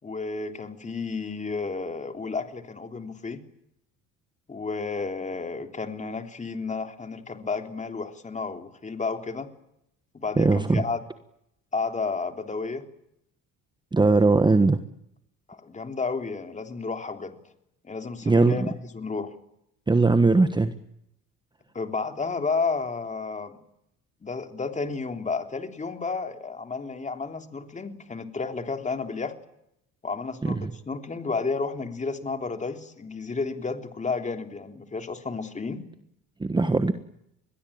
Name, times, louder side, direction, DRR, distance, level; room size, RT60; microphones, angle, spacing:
voice 1, 0.0-3.4 4.5-9.5 10.1-11.0 11.7-12.8 15.5-17.4 17.8-19.3 21.7-23.6 24.2-29.3 30.0-35.8, left 4 dB, 20° left, 6 dB, 3.4 m, -32 dB
voice 2, 10.4-10.8 13.9-14.8 18.2-18.6 19.9-20.7 30.4-30.7 36.4-36.9, right 3 dB, 15° right, 10 dB, 1.3 m, -20 dB
29.0 x 22.0 x 8.8 m, 0.79 s
cardioid pair, 125°, 35 cm